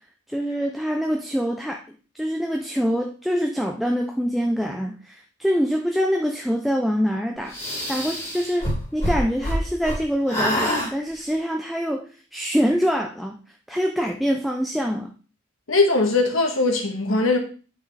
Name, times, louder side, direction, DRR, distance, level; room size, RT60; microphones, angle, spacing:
voice 1, 0.3-13.4 13.7-15.1, equal, ahead, 0.4 m, -25 dB
sound 1, 7.5-10.0 10.3-10.9, equal, 30° left, 2.6 m, -25 dB
voice 2, 15.7-17.4, left 3 dB, 70° left, 1.6 m, -20 dB
8.7 x 5.7 x 3.3 m
head